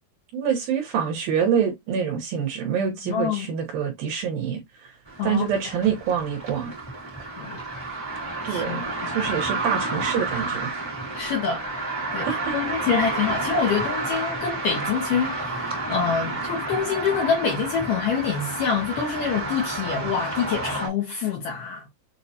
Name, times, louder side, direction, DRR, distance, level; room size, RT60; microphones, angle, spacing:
voice 1, 0.3-4.6 5.2-6.7 8.4-10.7 12.2-12.5, right 7 dB, 70° right, 2.4 m, -26 dB
voice 2, 3.0-3.5 5.2-5.5 7.2-7.6 8.5-9.1 11.1-11.6 12.1-21.9, left 6 dB, 75° left, 2.0 m, -26 dB
sound 1, 5.1-20.9, right 2 dB, 25° right, 0.8 m, -30 dB
6.9 x 2.3 x 2.7 m
omnidirectional pair, 5.0 m